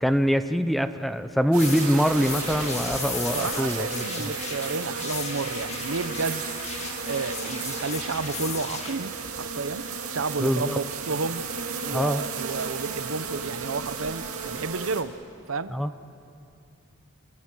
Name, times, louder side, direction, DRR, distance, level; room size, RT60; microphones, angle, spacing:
voice 1, 0.0-4.0 10.4-10.8 11.9-12.2 15.7-15.9, equal, ahead, 10 dB, 0.6 m, -24 dB
sound 1, 1.5-15.0, right 5 dB, 85° right, 2.3 m, -34 dB
sound 2, 1.6-9.0, left 4 dB, 30° left, 2.2 m, -36 dB
voice 2, 3.3-6.5 7.1-9.8 10.1-11.4 11.8-15.1 15.5-15.7, right 4 dB, 65° right, 13 dB, 0.8 m, -31 dB
26.0 x 25.5 x 6.2 m, 2.6 s
head